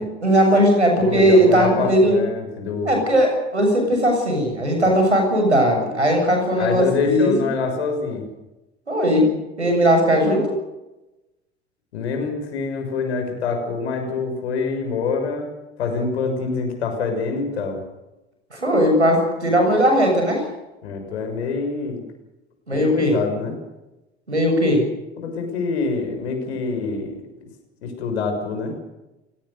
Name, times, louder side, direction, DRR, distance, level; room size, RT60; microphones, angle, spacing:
voice 1, 0.0-2.2 2.9-7.5 8.9-9.3 9.6-10.6 18.5-20.4 22.7-23.2 24.3-24.8, equal, 90° right, 3 dB, 7.1 m, -18 dB
voice 2, 1.0-3.0 6.6-8.2 11.9-15.5 15.8-17.8 20.8-22.0 22.7-23.6 25.2-27.2 27.8-28.7, left 4 dB, 75° left, 4 dB, 6.5 m, -25 dB
30.0 x 18.5 x 6.8 m, 1.0 s
figure-of-eight pair, 65°, 33 cm